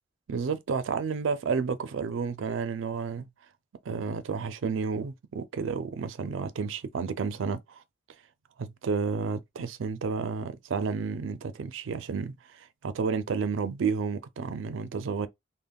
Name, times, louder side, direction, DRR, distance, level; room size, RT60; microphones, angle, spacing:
voice 1, 0.3-3.3 3.9-7.6 8.6-15.3, right 5 dB, 80° right, 0.4 m, -31 dB
2.2 x 2.0 x 3.4 m
head